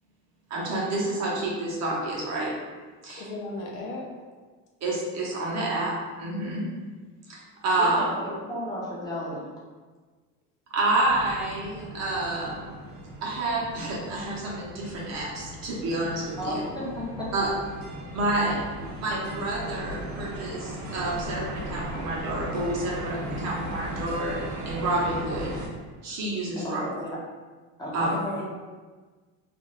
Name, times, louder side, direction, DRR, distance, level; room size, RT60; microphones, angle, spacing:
voice 1, 0.5-2.5 3.0-3.2 4.8-5.9 6.2-6.7 7.3-8.0 10.7-12.7 13.2-16.6 17.3-17.5 18.1-18.6 19.0-25.5 26.0-26.8 27.9-28.1, right 2 dB, 50° right, -4 dB, 0.8 m, -29 dB
voice 2, 3.2-4.1 26.6-26.7 28.1-28.5, left 2 dB, 60° left, -1 dB, 0.6 m, -35 dB
voice 3, 7.9-9.5 16.4-16.8 17.4-17.5 18.4-18.6 26.8-27.1 27.8-28.1, equal, 10° left, -6 dB, 0.6 m, -34 dB
sound 1, 11.0-25.7, right 1 dB, 90° right, 0.7 m, -37 dB
2.4 x 2.4 x 3.1 m, 1.4 s
cardioid pair, 145°, 34 cm